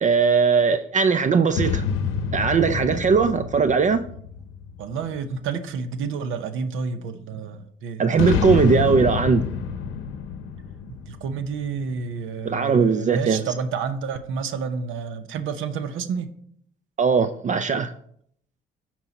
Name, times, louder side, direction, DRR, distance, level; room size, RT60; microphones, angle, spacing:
voice 1, 0.0-1.8 2.3-4.0 8.0-9.4 12.4-13.4 17.0-17.9, right 5 dB, 40° right, 0.5 m, -19 dB
sound 1, 1.5-5.2 8.1-11.9, left 6 dB, 85° left, 0.7 m, -28 dB
voice 2, 4.8-8.0 11.1-16.3, right 5 dB, 85° right, 0.8 m, -30 dB
9.5 x 4.7 x 4.1 m
cardioid pair, 90°, 20 cm